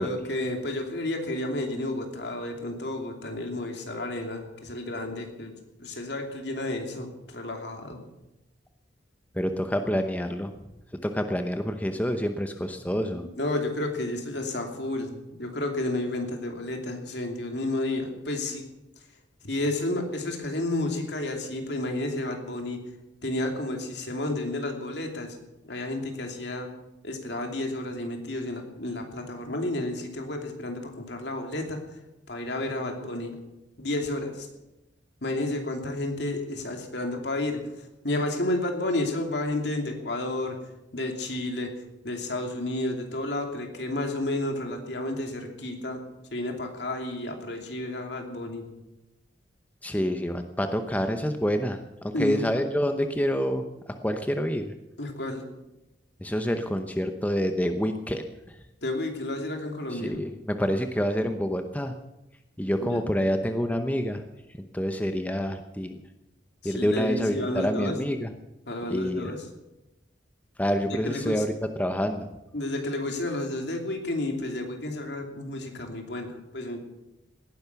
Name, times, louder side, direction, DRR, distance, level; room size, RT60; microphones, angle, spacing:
voice 1, 0.0-5.5 5.8-8.0 13.4-18.6 19.4-22.8 23.2-25.4 25.6-26.7 27.0-31.8 32.3-33.4 33.8-34.5 35.2-37.6 38.0-40.6 40.9-41.7 42.0-46.0 46.3-48.6 52.1-52.5 55.0-55.5 58.8-60.2 62.8-63.0 66.6-68.0 68.7-69.5 71.0-71.4 72.5-76.8, left 1 dB, 65° left, 3 dB, 2.9 m, -31 dB
voice 2, 9.3-10.5 11.0-13.2 49.8-51.8 52.0-53.6 54.0-54.6 56.2-58.2 59.9-61.9 62.6-64.2 64.7-66.0 66.6-68.3 68.9-69.3 70.6-72.3, equal, 10° left, 7 dB, 0.8 m, -27 dB
18.0 x 10.5 x 7.0 m, 0.96 s
head